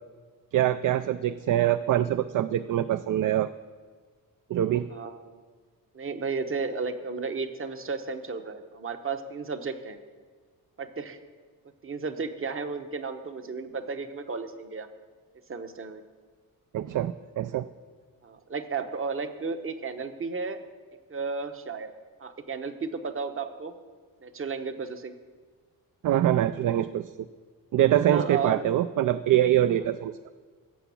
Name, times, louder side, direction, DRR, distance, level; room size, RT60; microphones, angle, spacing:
voice 1, 0.5-3.5 4.5-4.9 16.7-17.6 26.0-27.1 27.7-30.2, right 12 dB, 60° right, 13 dB, 0.4 m, -24 dB
voice 2, 4.9-5.4 5.9-10.0 10.8-11.2 11.8-14.9 15.5-16.0 18.2-20.6 21.1-21.9 22.2-23.7 24.2-25.1 28.0-28.7, right 4 dB, 35° right, 8 dB, 1.0 m, -33 dB
16.0 x 6.9 x 7.1 m, 1.5 s
wide cardioid pair, 140°, 37 cm